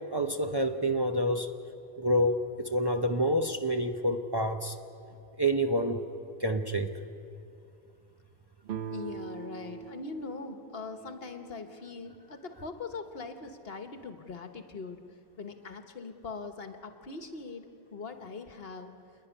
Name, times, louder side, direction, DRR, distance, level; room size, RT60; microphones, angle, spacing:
voice 1, 0.0-1.5 2.0-4.7 5.4-6.0 6.4-6.9, equal, 25° right, 4 dB, 0.7 m, -28 dB
sound 1, 8.6-12.3, right 7 dB, 60° right, 0.8 m, -43 dB
voice 2, 8.9-15.0 15.4-18.9, left 4 dB, 65° left, 6 dB, 1.4 m, -41 dB
27.5 x 10.5 x 9.8 m, 2.5 s
omnidirectional pair, 1.1 m